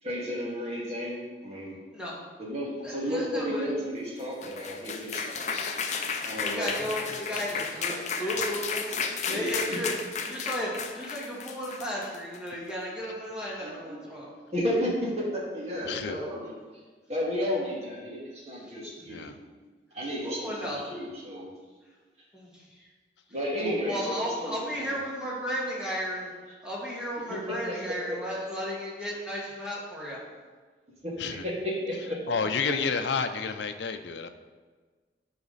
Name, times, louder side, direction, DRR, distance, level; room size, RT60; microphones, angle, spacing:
voice 1, 0.0-1.8 2.4-5.3 6.2-6.7 8.1-8.3 9.2-9.8 13.6-14.0 14.5-16.5 17.1-19.3 19.9-21.5 23.3-25.0 27.3-27.4 27.7-27.8 31.0-31.1 31.4-32.4, equal, 35° right, -5 dB, 2.1 m, -33 dB
voice 2, 2.8-3.7 6.4-9.9 10.2-14.3 18.6-19.1 20.2-20.9 22.3-22.9 23.6-26.3 26.6-30.2, equal, 5° right, -6 dB, 1.8 m, -34 dB
sound 1, 4.2-12.5, left 5 dB, 40° left, 0.6 m, -33 dB
voice 3, 5.5-5.8 15.8-16.2 19.1-19.4 31.2-31.4 32.3-34.3, left 5 dB, 85° left, 8 dB, 0.5 m, -30 dB
10.5 x 4.9 x 4.0 m, 1.4 s
head